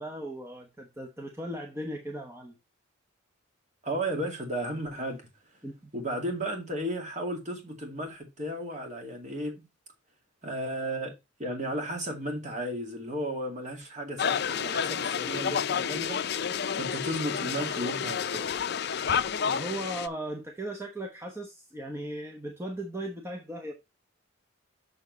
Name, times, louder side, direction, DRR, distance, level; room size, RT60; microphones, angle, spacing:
voice 1, 0.0-2.5 5.6-5.9 19.4-23.7, right 1 dB, 10° right, 0.9 m, -37 dB
voice 2, 3.8-5.3 5.9-9.5 10.4-11.1 11.4-16.2 16.7-18.4, right 1 dB, 35° right, 2.3 m, -34 dB
sound 1, 14.2-20.1, left 7 dB, 50° left, 0.5 m, -30 dB
7.1 x 6.5 x 3.9 m
head